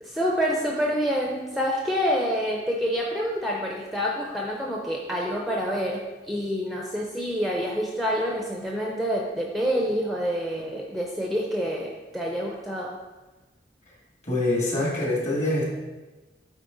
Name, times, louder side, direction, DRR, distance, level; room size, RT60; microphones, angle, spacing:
voice 1, 0.0-12.9, equal, ahead, -2 dB, 0.6 m, -27 dB
voice 2, 14.2-15.6, left 1 dB, 40° left, -4 dB, 2.1 m, -25 dB
8.8 x 4.3 x 3.9 m, 1.2 s
head